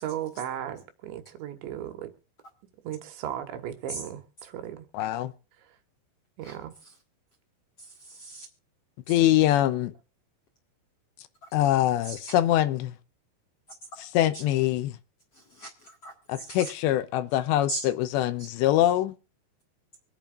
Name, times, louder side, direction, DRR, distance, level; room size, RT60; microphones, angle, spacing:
voice 1, 0.0-2.1 2.8-4.9 5.6-5.8 6.4-6.7 16.3-16.5, right 10 dB, 80° right, 3.6 m, -36 dB
voice 2, 4.9-5.3 9.1-9.9 11.5-12.9 14.0-15.0 16.3-19.1, left 13 dB, 80° left, 2.8 m, -24 dB
voice 3, 8.0-8.5 12.1-12.2 15.5-16.7 17.7-17.8 18.4-18.5, right 2 dB, 60° left, 1.7 m, -37 dB
25.0 x 8.9 x 2.5 m
omnidirectional pair, 5.3 m